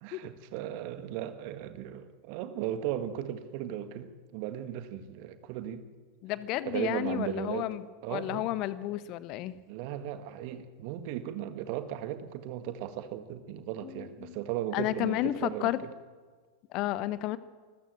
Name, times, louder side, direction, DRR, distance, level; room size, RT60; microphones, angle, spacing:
voice 1, 0.0-5.9 6.6-7.8 8.0-8.5 9.7-15.9, right 11 dB, 45° right, 9 dB, 1.8 m, -36 dB
voice 2, 6.2-7.8 8.1-9.6 13.8-14.4 14.7-15.8 16.7-17.4, left 15 dB, 40° left, 16 dB, 1.1 m, -32 dB
25.5 x 14.5 x 7.7 m, 1.5 s
figure-of-eight pair, 90°, 0 cm